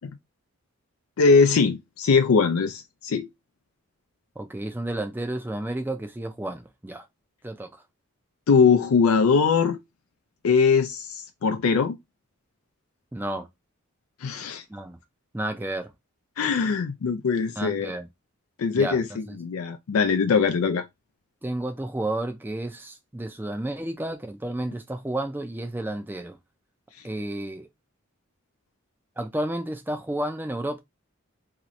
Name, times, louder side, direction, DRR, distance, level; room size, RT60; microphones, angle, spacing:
voice 1, 1.2-3.3 8.5-9.8 10.4-12.0 14.2-14.6 16.4-17.9 18.6-20.8, left 5 dB, 90° left, 0.4 m, -21 dB
voice 2, 4.4-7.1 7.4-7.7 13.1-13.5 14.7-15.0 15.3-15.9 17.6-18.1 18.7-19.0 19.3-19.4 21.4-26.4 27.0-27.7 29.2-30.8, right 1 dB, 10° right, 0.4 m, -31 dB
2.8 x 2.5 x 3.0 m
head